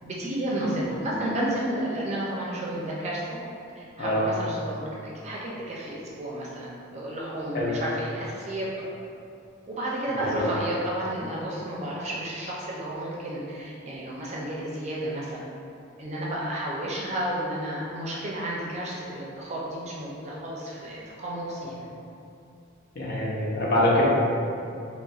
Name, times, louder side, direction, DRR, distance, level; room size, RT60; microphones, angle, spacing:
voice 1, 0.0-3.4 3.8-8.8 9.7-15.4 16.0-21.9, right 1 dB, 35° right, -5 dB, 0.4 m, -32 dB
voice 2, 23.0-24.0, left 1 dB, 50° left, -5 dB, 0.6 m, -24 dB
3.9 x 2.1 x 2.4 m, 2.6 s
head